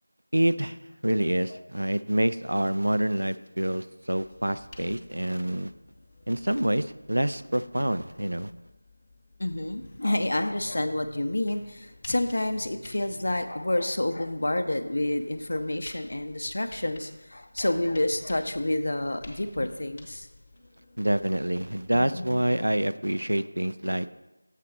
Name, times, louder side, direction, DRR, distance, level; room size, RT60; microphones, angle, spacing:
voice 1, 0.3-0.8 1.0-5.7 6.3-8.5 21.0-24.1, right 1 dB, 85° right, 13 dB, 0.3 m, -27 dB
sound 1, 4.2-22.1, left 2 dB, 20° left, 0.8 m, -53 dB
voice 2, 9.4-20.3 22.0-22.4, left 1 dB, 60° left, 9 dB, 0.6 m, -29 dB
7.4 x 3.8 x 5.8 m, 1.0 s
figure-of-eight pair, 175°, 0 cm